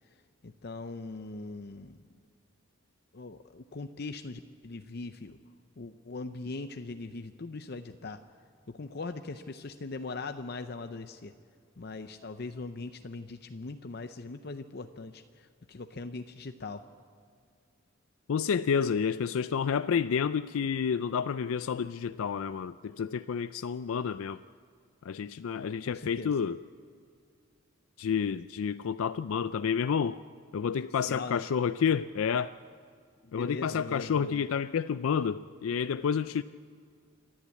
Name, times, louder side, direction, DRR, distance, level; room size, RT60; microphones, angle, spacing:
voice 1, 0.4-2.0 3.1-5.4 5.8-8.2 8.7-11.3 11.8-16.9 25.9-26.3 31.1-31.4 33.2-34.5, left 3 dB, 50° left, 8 dB, 0.6 m, -40 dB
voice 2, 18.3-24.4 25.0-26.6 28.0-30.2 30.5-32.5 33.3-36.4, left 7 dB, 90° left, 13 dB, 0.4 m, -29 dB
28.0 x 11.5 x 8.4 m, 2.3 s
head